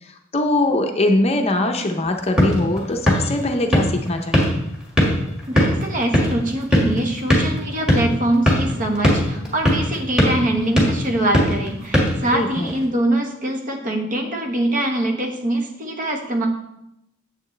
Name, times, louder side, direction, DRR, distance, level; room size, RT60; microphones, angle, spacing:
voice 1, 0.0-4.6 12.3-12.7, left 1 dB, 30° left, 4 dB, 0.7 m, -22 dB
sound 1, 2.0-12.8, equal, 5° right, 1.8 m, -21 dB
voice 2, 5.5-16.5, right 1 dB, 40° right, 2 dB, 1.3 m, -23 dB
8.8 x 7.7 x 3.3 m, 0.82 s
head